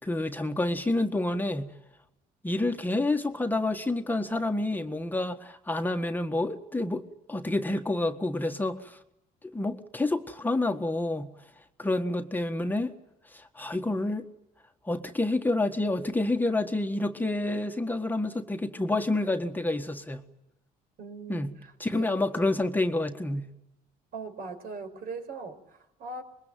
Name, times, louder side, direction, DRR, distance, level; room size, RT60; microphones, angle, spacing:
voice 1, 0.0-1.7 2.4-7.0 7.3-9.0 9.4-11.3 11.8-12.9 13.3-14.3 14.8-20.2 21.3-21.5 21.8-23.5, left 2 dB, 10° left, 1.6 m, -28 dB
voice 2, 21.0-22.1 24.1-26.2, right 3 dB, 60° right, 5.3 m, -40 dB
26.5 x 22.0 x 9.3 m
cardioid pair, 110°, 17 cm